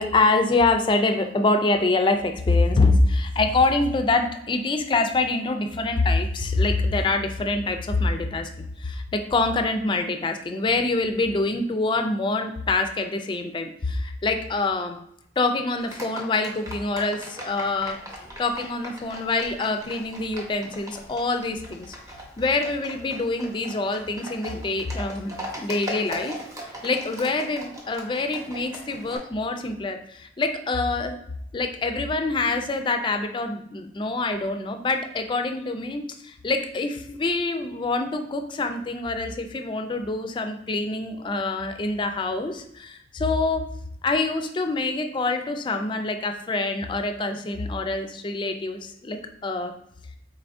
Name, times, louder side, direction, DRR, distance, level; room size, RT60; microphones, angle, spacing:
voice 1, 0.0-15.0 15.4-18.0 18.4-22.0 22.4-31.2 31.5-43.6 44.0-49.7, left 3 dB, 25° left, 6 dB, 0.3 m, -25 dB
Livestock farm animals working animals, 15.8-29.2, right 1 dB, 20° right, 0.7 m, -40 dB
4.1 x 3.5 x 2.5 m, 0.73 s
head